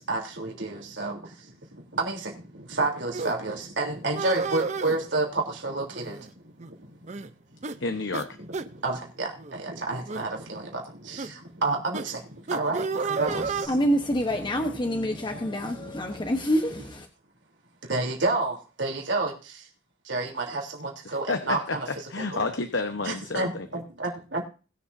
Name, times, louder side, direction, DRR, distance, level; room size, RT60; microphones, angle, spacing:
voice 1, 0.1-1.2 1.9-2.3 2.7-6.2 8.8-11.3 11.6-12.2 12.5-13.6 15.8-15.9 17.9-19.3 20.1-21.9 22.3-22.4 23.0-24.4, right 3 dB, 75° right, 3.4 m, -29 dB
sound 1, 3.1-3.3 4.1-5.0 5.9-6.3 6.6-6.7 7.1-7.3 7.6-7.8 8.1-8.3 8.5-8.7 9.4-9.6 10.1-10.3 11.2-11.3 11.9-12.1 12.5-13.7, right 4 dB, 40° right, 0.7 m, -31 dB
voice 2, 7.8-8.3 21.3-23.7, left 3 dB, 85° left, 1.1 m, -30 dB
voice 3, 13.3-17.1, equal, 25° left, 1.0 m, -27 dB
21.0 x 7.0 x 2.7 m
head